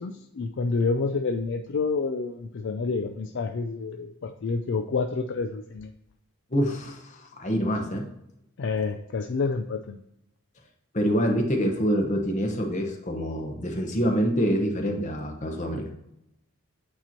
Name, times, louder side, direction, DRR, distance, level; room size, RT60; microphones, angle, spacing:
voice 1, 0.0-5.9 8.6-10.0, left 4 dB, 55° left, 4 dB, 0.4 m, -28 dB
voice 2, 6.5-8.0 10.9-15.8, equal, 35° left, 2 dB, 1.0 m, -26 dB
8.7 x 3.0 x 4.2 m, 0.80 s
head